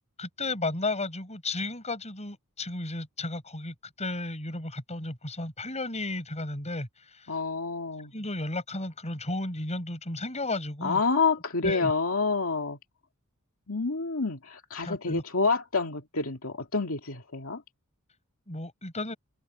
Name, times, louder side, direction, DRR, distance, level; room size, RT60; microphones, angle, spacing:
voice 1, 0.2-7.3 8.1-11.0 11.6-11.9 14.8-15.2 18.5-19.2, left 2 dB, 30° left, 5.6 m, -33 dB
voice 2, 7.3-8.1 10.8-12.8 13.7-17.6, left 4 dB, 70° left, 2.5 m, -28 dB
head